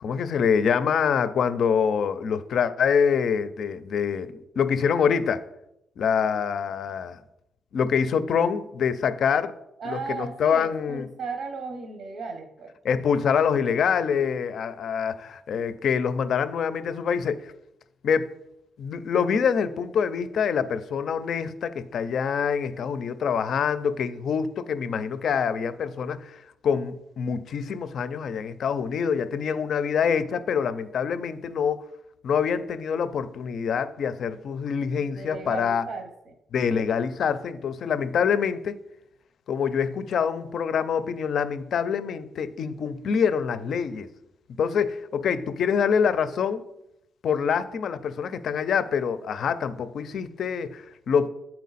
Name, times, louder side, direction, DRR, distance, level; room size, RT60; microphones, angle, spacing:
voice 1, 0.0-5.4 6.0-7.2 7.7-9.5 9.9-11.1 12.8-17.5 18.0-18.3 18.8-31.8 32.2-35.8 36.5-38.8 39.5-44.1 44.6-46.6 47.2-51.3, left 7 dB, 60° left, 13 dB, 0.4 m, -25 dB
voice 2, 9.8-12.7 34.8-36.3, right 4 dB, 70° right, 4 dB, 0.9 m, -36 dB
8.4 x 4.4 x 4.0 m, 0.83 s
cardioid pair, 145°, 0 cm